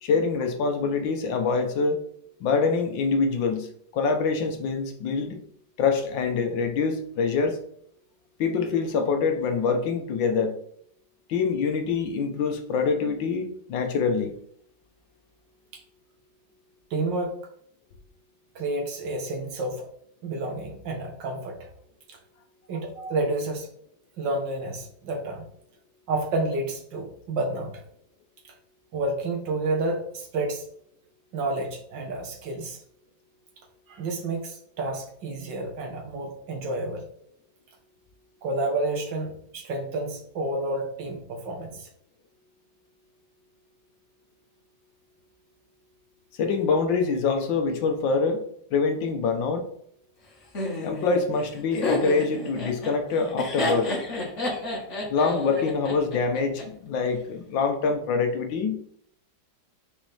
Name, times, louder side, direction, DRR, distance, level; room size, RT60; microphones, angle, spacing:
voice 1, 0.0-2.0 2.4-3.7 3.9-5.4 5.8-7.6 8.4-10.6 11.3-14.3 46.4-48.4 48.7-49.7 50.8-54.0 55.1-58.8, left 4 dB, 85° left, 6 dB, 1.6 m, -25 dB
voice 2, 16.9-17.4 18.6-19.9 20.2-21.7 22.1-22.2 22.7-23.7 24.2-25.5 26.1-27.8 28.9-30.7 31.3-32.8 33.9-37.1 38.4-41.9, right 2 dB, 75° right, 1 dB, 1.8 m, -30 dB
Laughter, 50.5-56.6, left 2 dB, 40° left, 1.7 m, -30 dB
6.2 x 5.1 x 3.3 m, 0.67 s
omnidirectional pair, 2.0 m